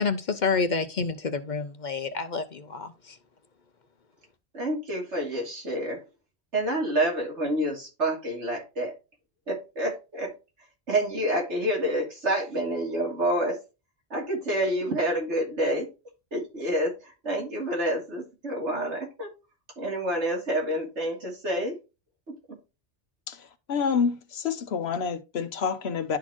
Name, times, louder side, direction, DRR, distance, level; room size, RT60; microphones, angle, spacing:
voice 1, 0.0-3.1, left 4 dB, 50° left, 0.7 m, -28 dB
voice 2, 4.5-6.0 6.5-8.9 9.5-10.3 10.9-13.6 14.1-15.9 16.3-19.3 19.8-21.8 22.3-22.6, right 1 dB, 90° right, 2.9 m, -28 dB
voice 3, 23.3-26.2, left 6 dB, 70° left, 1.0 m, -28 dB
11.5 x 4.2 x 2.9 m
omnidirectional pair, 1.2 m